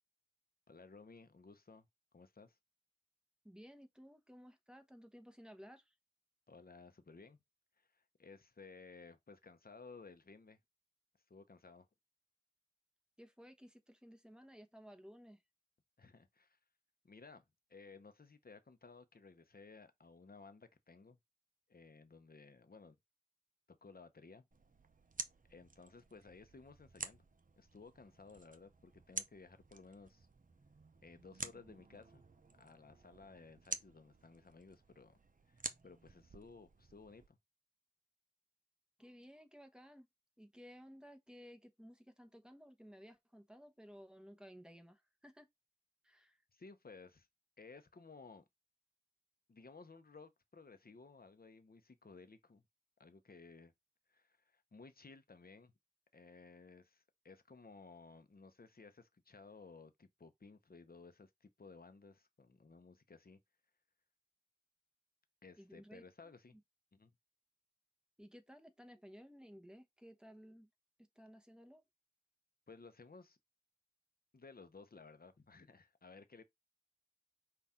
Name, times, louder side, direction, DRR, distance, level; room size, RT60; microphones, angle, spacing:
voice 1, 0.7-1.9 2.1-2.6 6.5-7.4 7.8-10.6 11.3-11.9 16.0-16.6 17.0-17.4 17.7-21.2 21.7-23.0 23.7-24.5 25.5-27.2 27.6-30.3 31.0-32.2 32.6-35.2 35.5-37.4 46.5-47.3 47.6-48.4 49.5-52.6 53.0-53.7 54.1-55.7 56.1-63.4 65.4-66.6 66.9-67.1 72.7-73.4 74.3-76.4, left 4 dB, 70° left, 0.8 m, -57 dB
voice 2, 3.4-5.9 13.2-15.4 39.0-40.1 40.4-45.5 46.0-46.4 65.6-66.6 68.2-70.7 71.2-71.8, equal, 5° right, 1.0 m, -57 dB
sound 1, 24.5-37.3, right 3 dB, 60° right, 0.6 m, -50 dB
5.7 x 2.5 x 3.6 m
wide cardioid pair, 40°, 16 cm